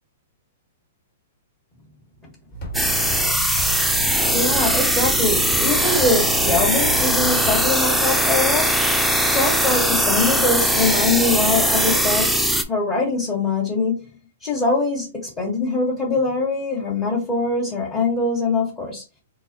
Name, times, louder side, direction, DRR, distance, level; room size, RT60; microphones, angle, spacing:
sound 1, 2.5-7.7, right 4 dB, 45° left, 1.4 m, -32 dB
sound 2, 2.7-12.6, equal, ahead, 0.4 m, -20 dB
voice 1, 4.3-8.7 9.2-14.1 14.4-19.0, left 3 dB, 25° left, 1.2 m, -23 dB
3.8 x 2.9 x 2.7 m
hypercardioid pair, 145°, 0 cm